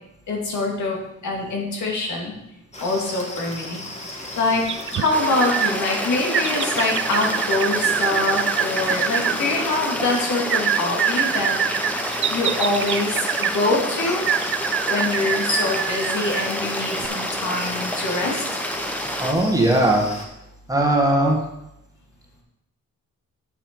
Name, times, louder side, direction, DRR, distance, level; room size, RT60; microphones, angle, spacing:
voice 1, 0.3-2.3 2.8-3.8 4.2-12.0 12.3-14.2 14.9-18.4, left 2 dB, 70° left, -1 dB, 2.5 m, -24 dB
sound 1, 2.7-20.3, left 1 dB, 20° left, 1.5 m, -36 dB
sound 2, 4.7-5.7 6.3-9.4 10.5-13.6 14.3-16.5 17.0-17.1, right 9 dB, 40° right, 0.4 m, -25 dB
sound 3, 5.1-19.3, equal, 5° left, 0.7 m, -29 dB
voice 2, 19.2-20.1 20.7-21.4, right 1 dB, 10° right, -1 dB, 1.4 m, -18 dB
9.2 x 6.7 x 4.6 m, 0.87 s
wide cardioid pair, 150°, 30 cm